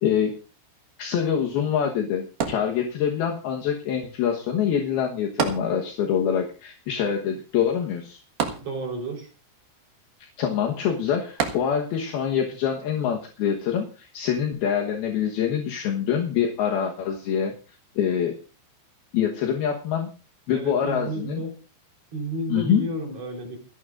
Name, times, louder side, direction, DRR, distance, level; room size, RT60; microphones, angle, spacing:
voice 1, 0.0-0.3 1.0-8.2 10.4-17.5 18.0-18.4 19.1-20.1 20.5-21.4 22.5-22.9, left 8 dB, 70° left, 1 dB, 2.7 m, -25 dB
sound 1, 2.4-3.3 5.4-6.3 6.5-6.6 8.4-9.2 11.4-12.1 12.8-12.9, right 6 dB, 60° right, 2.8 m, -30 dB
voice 2, 8.6-9.3 20.5-21.6 22.1-23.6, right 2 dB, 35° right, 2 dB, 4.7 m, -31 dB
28.5 x 10.5 x 2.6 m, 0.35 s
omnidirectional pair, 5.7 m